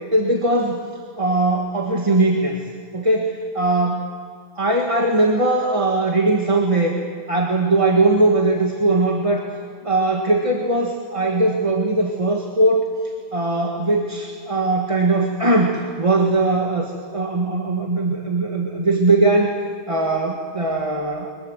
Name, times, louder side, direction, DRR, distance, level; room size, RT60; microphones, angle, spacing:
voice 1, 0.1-0.8 1.2-2.6 2.9-4.1 4.5-7.0 7.3-9.5 9.8-12.9 13.3-19.5 19.9-21.3, right 2 dB, 25° right, 1 dB, 1.7 m, -20 dB
23.0 x 21.5 x 7.8 m, 2.2 s
omnidirectional pair, 1.3 m